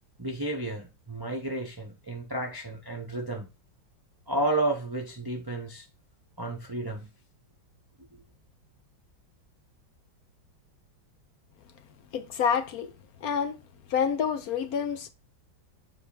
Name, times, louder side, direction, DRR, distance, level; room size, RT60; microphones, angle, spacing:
voice 1, 0.2-3.5 4.3-5.9 6.4-7.1, right 2 dB, 15° right, 0.9 m, -32 dB
voice 2, 12.1-12.9 13.2-13.6 13.9-15.1, left 7 dB, 60° left, 1.0 m, -28 dB
7.9 x 3.3 x 5.0 m
omnidirectional pair, 2.1 m